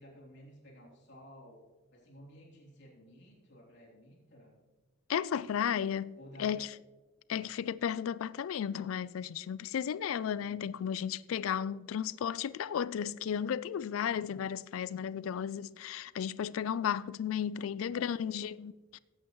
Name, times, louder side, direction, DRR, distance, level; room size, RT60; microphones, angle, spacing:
voice 1, 0.0-1.6 1.9-4.6 6.1-6.7 7.3-7.6 10.4-10.7 17.8-18.4, equal, 55° left, 3.3 m, -55 dB
voice 2, 5.1-6.7 7.3-19.0, left 8 dB, 80° left, 0.3 m, -34 dB
16.5 x 8.5 x 3.1 m
head